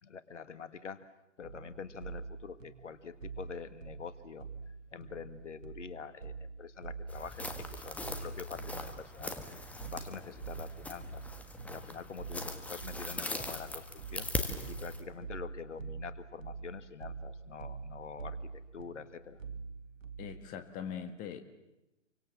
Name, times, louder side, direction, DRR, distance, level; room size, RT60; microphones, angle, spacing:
voice 1, 0.0-1.0 1.4-9.4 9.8-11.3 11.7-13.8 14.1-14.3 14.7-18.4 18.7-19.4, left 6 dB, 65° left, 12 dB, 1.8 m, -46 dB
sound 1, 1.4-20.5, right 5 dB, 80° right, 2.1 m, -46 dB
sound 2, 7.1-15.0, left 2 dB, 5° left, 1.5 m, -41 dB
voice 2, 20.2-21.4, left 8 dB, 20° left, 8 dB, 1.8 m, -41 dB
29.0 x 24.5 x 7.5 m, 0.92 s
figure-of-eight pair, 130°, 39 cm